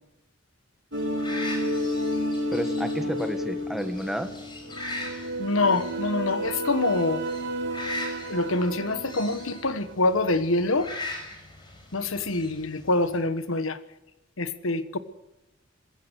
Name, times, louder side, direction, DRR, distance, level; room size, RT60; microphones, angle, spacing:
sound 1, 0.9-13.2, left 2 dB, 20° left, 5.4 m, -41 dB
sound 2, 0.9-9.9, equal, 55° right, 2.9 m, -31 dB
voice 1, 2.5-4.3, equal, ahead, 8 dB, 1.4 m, -31 dB
voice 2, 5.4-7.2 8.3-10.9 11.9-13.8 14.4-15.0, left 2 dB, 80° left, 13 dB, 1.4 m, -25 dB
21.0 x 15.5 x 8.2 m, 0.97 s
head